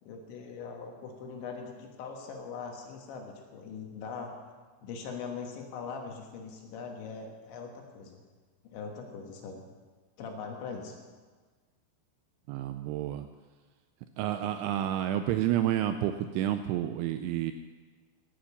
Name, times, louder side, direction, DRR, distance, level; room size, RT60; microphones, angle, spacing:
voice 1, 0.0-4.3 4.8-8.2 8.6-9.6 10.2-10.9, left 5 dB, 70° left, 2 dB, 3.6 m, -41 dB
voice 2, 12.5-13.3 14.2-17.5, right 12 dB, 85° right, 9 dB, 2.7 m, -30 dB
17.0 x 7.7 x 7.1 m, 1.4 s
omnidirectional pair, 5.8 m